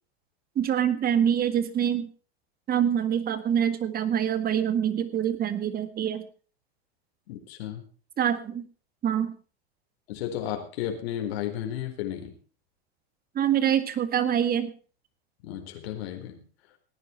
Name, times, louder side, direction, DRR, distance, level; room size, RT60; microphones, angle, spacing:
voice 1, 0.6-2.1 2.7-6.2 8.2-8.7 9.0-9.3 13.4-14.7, right 9 dB, 30° right, 12 dB, 1.9 m, -25 dB
voice 2, 7.3-7.8 10.1-12.3 15.4-16.4, left 11 dB, 65° left, 3 dB, 4.2 m, -33 dB
17.5 x 10.0 x 4.5 m, 0.39 s
hypercardioid pair, 120°, 32 cm